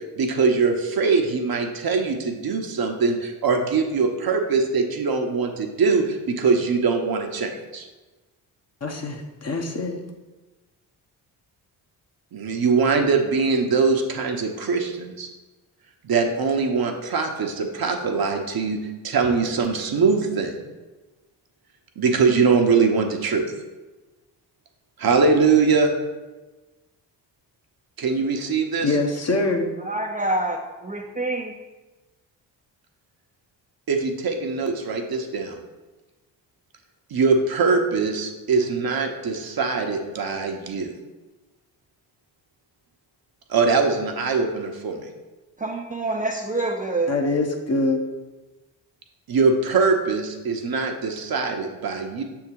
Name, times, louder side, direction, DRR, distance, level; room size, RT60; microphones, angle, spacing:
voice 1, 0.0-7.9 12.3-15.3 16.0-18.8 19.0-20.6 22.0-23.4 25.0-25.9 28.0-28.9 33.9-35.6 37.1-40.9 43.5-44.9 49.3-52.2, right 4 dB, 50° right, 3 dB, 1.0 m, -22 dB
voice 2, 8.8-10.0 28.8-29.7 47.1-48.0, left 2 dB, 35° left, 2 dB, 1.1 m, -24 dB
voice 3, 29.8-30.6 30.8-31.6 45.6-47.1, right 2 dB, 15° right, -1 dB, 0.7 m, -26 dB
6.4 x 3.6 x 4.7 m, 1.2 s
supercardioid pair, 50°, 45 cm